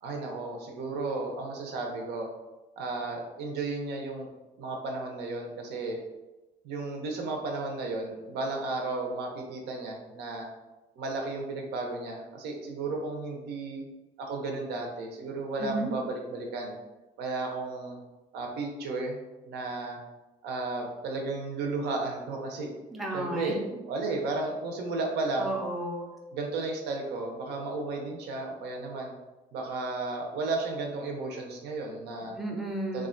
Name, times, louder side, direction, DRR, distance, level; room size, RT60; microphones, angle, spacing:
voice 1, 0.0-2.3 2.8-4.3 4.6-6.0 6.6-10.5 11.0-13.8 14.2-16.7 17.2-18.0 18.3-19.2 19.4-20.0 20.4-22.7 23.1-23.6 23.9-25.5 26.3-29.1 29.5-32.4 32.9-33.1, right 3 dB, 80° right, 1 dB, 0.6 m, -33 dB
voice 2, 15.6-15.9 22.9-23.6 25.4-26.1 32.3-33.1, right 1 dB, ahead, -1 dB, 0.4 m, -33 dB
2.4 x 2.2 x 2.4 m, 1.1 s
cardioid pair, 110°, 17 cm